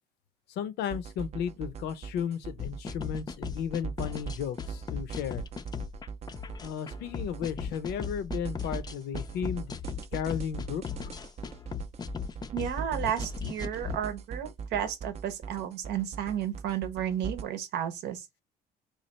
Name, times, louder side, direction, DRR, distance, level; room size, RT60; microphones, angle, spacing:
voice 1, 0.6-5.4 6.6-9.7 10.1-11.2, left 8 dB, 80° left, 0.6 m, -34 dB
sound 1, 0.9-17.4, right 5 dB, 40° right, 0.4 m, -40 dB
sound 2, 2.6-14.0, left 6 dB, 25° left, 0.4 m, -38 dB
voice 2, 12.5-18.2, right 9 dB, 80° right, 0.8 m, -32 dB
3.2 x 2.4 x 4.1 m
cardioid pair, 110°, 17 cm